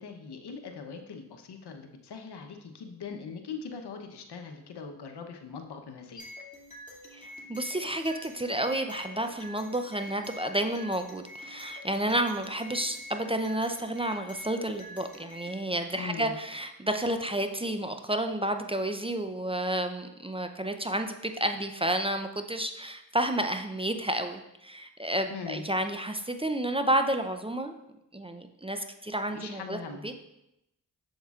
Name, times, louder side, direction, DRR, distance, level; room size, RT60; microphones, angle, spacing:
voice 1, 0.0-6.2 15.9-16.3 25.3-25.6 29.3-30.1, left 5 dB, 75° left, 5 dB, 1.0 m, -41 dB
sound 1, 6.2-15.6, left 1 dB, 20° left, 2.5 m, -46 dB
voice 2, 7.1-27.7 28.1-29.8 30.0-30.2, right 1 dB, 15° right, 6 dB, 0.6 m, -31 dB
7.7 x 7.2 x 2.4 m, 0.85 s
cardioid pair, 50°, 40 cm